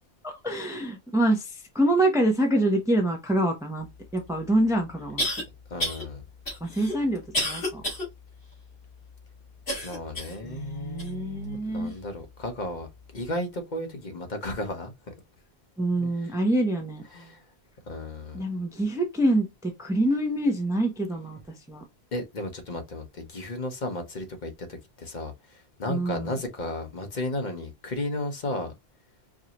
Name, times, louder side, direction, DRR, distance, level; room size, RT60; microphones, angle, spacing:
voice 1, 0.2-3.9 4.1-5.2 6.6-7.8 10.4-11.9 15.8-17.0 18.3-21.4 21.7-21.8 25.9-26.3, right 1 dB, 5° right, 0.8 m, -26 dB
sound 1, 4.2-4.3 5.2-5.4 5.8-6.0 6.5-8.1 8.5-8.6 9.7-10.4 11.0-11.1 11.9-12.0, left 1 dB, 75° left, 2.6 m, -30 dB
voice 2, 5.7-6.2 9.8-12.9 13.1-15.1 16.0-16.3 17.1-17.4 17.9-18.4 22.1-25.3 25.8-28.7, left 1 dB, 45° left, 1.1 m, -34 dB
4.8 x 2.7 x 2.9 m
omnidirectional pair, 1.1 m